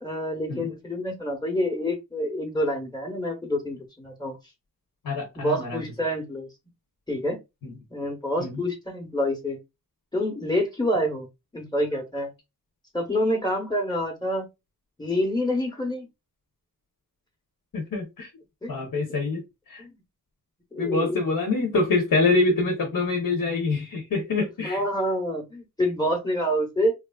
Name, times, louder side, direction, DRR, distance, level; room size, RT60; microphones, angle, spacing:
voice 1, 0.0-4.3 5.4-6.5 7.1-7.4 7.9-9.6 10.1-11.3 11.5-12.3 12.9-14.5 15.0-16.1 18.6-18.7 19.8-19.9 20.7-21.2 24.6-26.9, equal, 10° left, 2 dB, 0.8 m, -27 dB
voice 2, 5.0-5.8 7.6-7.7 8.4-8.6 17.7-18.3 18.7-19.4 19.7-19.8 20.8-24.8, left 3 dB, 70° left, 2 dB, 0.8 m, -25 dB
3.0 x 2.4 x 2.2 m, 0.22 s
wide cardioid pair, 75°, 36 cm